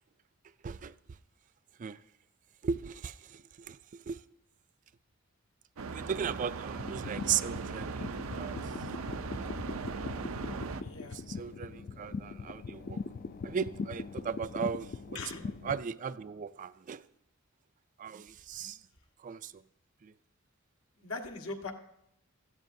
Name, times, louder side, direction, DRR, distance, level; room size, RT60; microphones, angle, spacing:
voice 1, 2.6-4.2 5.9-8.6 11.1-13.0 13.4-15.2 15.6-17.0 18.0-18.8 19.2-19.6 20.0-20.1, right 7 dB, 40° right, 0.3 m, -37 dB
sound 1, 5.8-10.8, right 4 dB, 90° right, 0.6 m, -38 dB
sound 2, 6.7-15.9, left 4 dB, 45° left, 0.4 m, -41 dB
voice 2, 10.8-11.2 15.1-15.4 21.0-21.7, left 3 dB, 80° left, 1.5 m, -40 dB
16.5 x 13.5 x 2.7 m
head